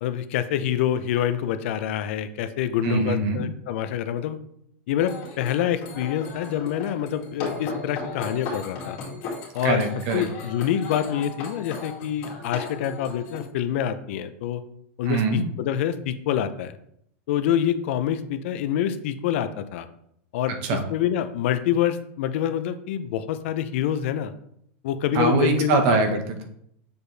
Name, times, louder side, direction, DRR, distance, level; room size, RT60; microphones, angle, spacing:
voice 1, 0.0-4.4 4.9-9.0 9.5-9.8 10.1-14.6 15.0-16.8 17.3-19.9 20.3-24.3 24.8-26.0, left 10 dB, 70° left, 11 dB, 0.6 m, -26 dB
voice 2, 2.8-3.4 9.6-10.2 15.0-15.4 20.6-20.8 25.1-26.4, right 4 dB, 55° right, 5 dB, 1.2 m, -23 dB
sound 1, 5.0-13.4, left 4 dB, 50° left, 2.4 m, -36 dB
6.8 x 4.3 x 3.3 m, 0.72 s
supercardioid pair, 145°, 7 cm